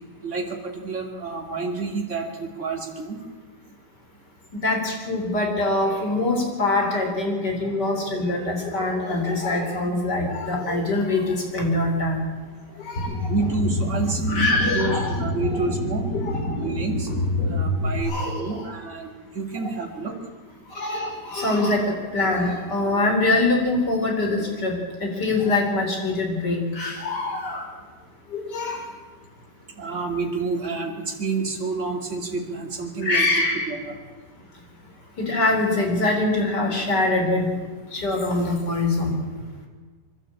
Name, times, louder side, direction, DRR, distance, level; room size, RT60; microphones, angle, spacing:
voice 1, 0.2-3.2 13.3-16.1 16.6-17.1 17.4-20.1 29.8-33.3 33.7-34.0, right 4 dB, 45° right, 2 dB, 3.0 m, -29 dB
voice 2, 4.6-12.2 12.8-13.3 14.3-15.2 15.5-15.6 16.1-16.7 18.1-18.6 19.6-19.7 20.7-24.7 25.0-27.7 28.3-28.8 33.0-33.7 35.2-37.5 37.9-39.2, left 2 dB, 75° left, 2 dB, 4.4 m, -24 dB
sound 1, 13.0-18.0, left 1 dB, 60° left, 5.0 m, -27 dB
24.0 x 12.5 x 8.7 m, 1.4 s
omnidirectional pair, 1.8 m